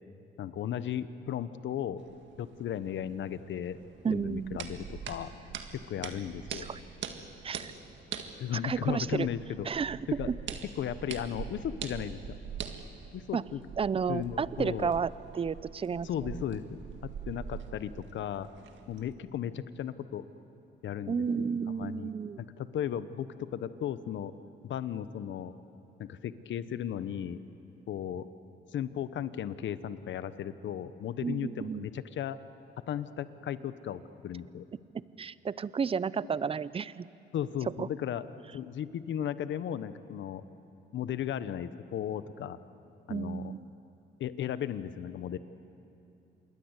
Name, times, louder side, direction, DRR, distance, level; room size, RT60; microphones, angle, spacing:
voice 1, 0.4-2.0 2.4-3.8 4.1-5.3 5.7-6.7 8.4-9.7 10.2-10.3 10.7-12.4 13.1-13.6 14.1-14.9 16.0-18.5 18.9-20.2 20.8-24.3 24.6-25.5 26.0-27.4 27.9-28.3 28.7-32.4 32.9-34.6 37.3-38.2 38.5-40.4 40.9-42.6 43.1-43.5 44.2-45.4, left 9 dB, 70° left, 13 dB, 1.1 m, -36 dB
sound 1, 2.0-19.1, right 7 dB, 70° right, 1.8 m, -44 dB
voice 2, 4.0-4.6 6.5-6.8 7.4-7.7 8.6-9.3 9.6-10.4 13.3-13.4 13.8-16.4 21.1-22.4 31.2-31.9 35.2-37.1 37.8-37.9 43.1-43.7, right 6 dB, 30° right, 18 dB, 0.6 m, -32 dB
27.5 x 22.0 x 8.2 m, 2.9 s
cardioid pair, 90°, 20 cm